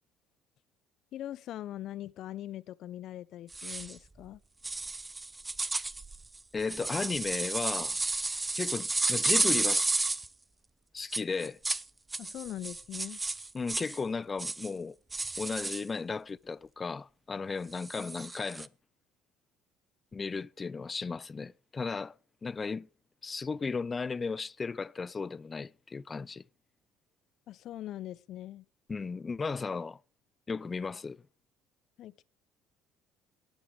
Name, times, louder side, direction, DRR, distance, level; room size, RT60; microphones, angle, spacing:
voice 1, 1.1-4.4 12.2-13.2 27.5-28.6 32.0-32.2, left 13 dB, 60° left, 0.8 m, -41 dB
sound 1, 3.5-3.9 4.6-10.3 11.1-11.8 12.1-14.0 14.4-14.7 15.1-15.8 17.8-18.7, right 3 dB, 20° right, 0.8 m, -32 dB
voice 2, 6.5-8.0 8.6-10.0 10.9-11.6 13.5-15.0 15.4-18.7 20.1-22.1 22.4-22.9 23.2-26.4 28.9-30.0 30.5-31.2, left 4 dB, 30° left, 0.5 m, -35 dB
18.0 x 9.1 x 5.0 m
hypercardioid pair, 65°, 0 cm